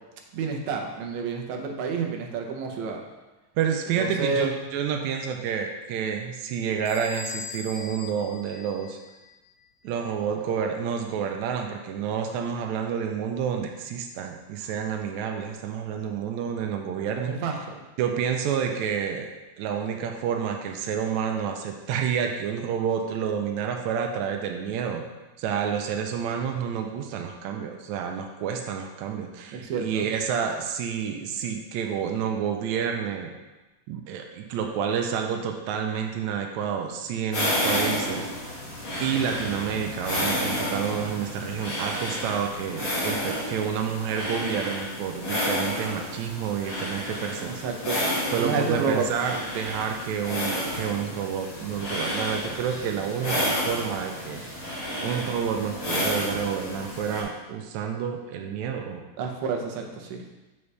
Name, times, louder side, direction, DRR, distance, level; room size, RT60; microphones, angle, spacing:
voice 1, 0.3-3.0 4.0-4.5 17.3-17.8 29.5-30.1 47.5-48.0 48.4-49.0 59.2-60.2, right 5 dB, 70° right, 2 dB, 1.8 m, -29 dB
voice 2, 3.6-9.0 9.8-17.3 18.0-19.3 19.6-25.0 25.4-33.3 33.9-38.6 39.0-47.5 48.3-54.6 55.0-59.0, right 7 dB, 90° right, 3 dB, 1.6 m, -29 dB
Bell / Door, 6.9-9.4, left 4 dB, 80° left, 3.1 m, -40 dB
sound 1, 37.3-57.2, equal, 55° left, 0.9 m, -31 dB
7.0 x 5.4 x 3.3 m, 1.1 s
omnidirectional pair, 3.8 m